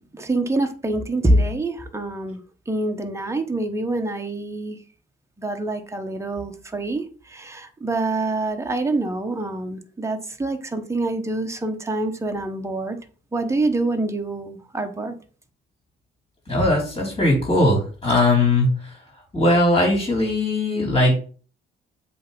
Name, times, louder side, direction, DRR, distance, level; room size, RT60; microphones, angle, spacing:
voice 1, 0.1-2.4 2.7-4.8 5.4-13.0 13.3-15.1, right 2 dB, 15° right, 1.1 m, -25 dB
voice 2, 16.5-19.0 19.3-21.2, left 1 dB, 25° left, 4.2 m, -19 dB
7.7 x 3.4 x 5.3 m
cardioid pair, 90°, 20 cm